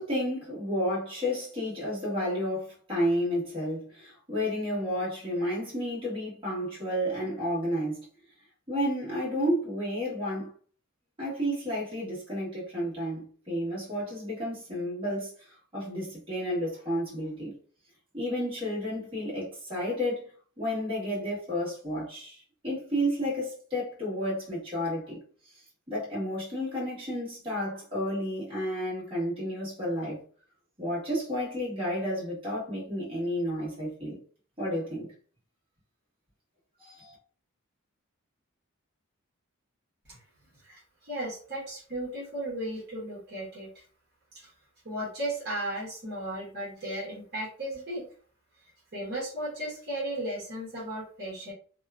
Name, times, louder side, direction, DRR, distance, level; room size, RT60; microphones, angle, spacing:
voice 1, 0.0-8.1 8.7-10.5 11.2-17.5 18.1-20.3 20.6-25.2 25.9-30.2 30.8-34.2 34.6-35.1 36.8-37.2, equal, 25° right, 1.3 m, -31 dB
voice 2, 40.6-43.7 44.4-44.5 44.8-48.1 48.9-51.5, right 1 dB, 50° right, 1.0 m, -35 dB
2.8 x 2.2 x 2.3 m
head